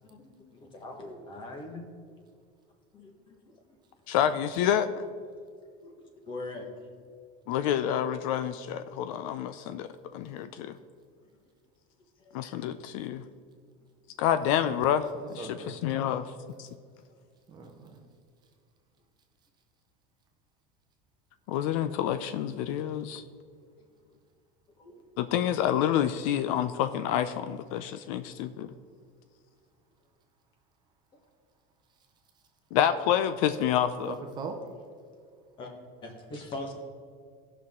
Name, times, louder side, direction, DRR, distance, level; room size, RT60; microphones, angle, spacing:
voice 1, 0.0-1.8 2.9-3.6 4.2-4.3 5.8-6.7 11.2-11.3 12.2-12.3 17.1-17.2 23.8-23.9 24.8-25.1 31.1-31.2 35.6-35.7 36.0-36.7, left 2 dB, 25° left, 3 dB, 1.3 m, -42 dB
voice 2, 4.1-4.9 7.5-10.8 12.3-13.2 14.2-15.0 15.3-16.3 16.6-16.7 21.5-23.2 25.2-28.7 32.7-34.1, left 10 dB, 65° left, 11 dB, 0.5 m, -28 dB
voice 3, 14.5-14.8 15.1-15.8 17.5-18.0 34.0-34.7, right 4 dB, 25° right, 4 dB, 0.8 m, -40 dB
17.0 x 5.9 x 3.7 m, 2.1 s
cardioid pair, 180°, 19 cm